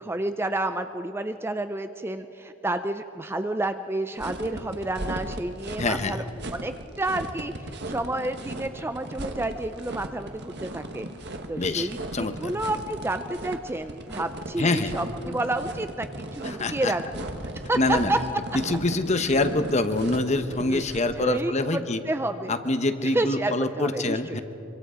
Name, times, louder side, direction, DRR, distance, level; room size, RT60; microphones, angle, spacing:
voice 1, 0.0-6.2 6.5-11.1 11.5-17.3 17.7-18.2 20.7-20.8 21.2-22.5 23.0-24.4, right 2 dB, 10° right, 9 dB, 0.5 m, -30 dB
sound 1, 4.2-21.2, right 1 dB, 55° right, 1.6 m, -37 dB
voice 2, 5.8-6.2 11.5-12.5 14.6-14.9 16.4-16.9 17.8-18.1 18.5-22.0 22.5-24.4, left 2 dB, 35° left, 9 dB, 1.0 m, -25 dB
25.0 x 24.5 x 5.0 m, 2.9 s
head